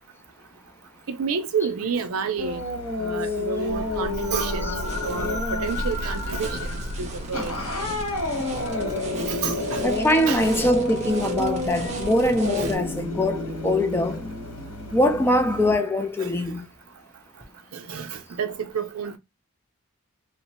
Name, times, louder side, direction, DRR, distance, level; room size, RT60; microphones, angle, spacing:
voice 1, 1.1-2.6 3.0-4.7 5.0-7.6 9.3-9.8 10.3-10.5 12.6-12.7 16.2-16.3 17.7-19.2, right 6 dB, 75° right, 0.5 m, -29 dB
sound 1, 2.4-15.8, left 2 dB, 80° left, 1.2 m, -31 dB
sound 2, 3.7-9.5 10.7-11.2 12.9-13.1, left 1 dB, 60° left, 0.6 m, -33 dB
sound 3, 3.7-12.8, right 1 dB, 30° right, 0.6 m, -38 dB
voice 2, 9.8-14.2 14.9-16.7, left 1 dB, 10° left, 0.3 m, -22 dB
2.7 x 2.1 x 2.6 m
head